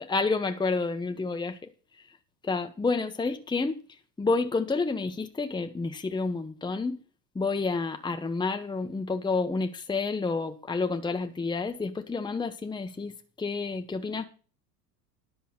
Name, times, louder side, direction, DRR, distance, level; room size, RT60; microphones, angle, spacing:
voice 1, 0.0-1.7 2.4-3.8 4.2-7.0 7.3-14.2, left 4 dB, 10° left, 1.2 m, -29 dB
11.0 x 6.9 x 6.0 m
figure-of-eight pair, 80°, 49 cm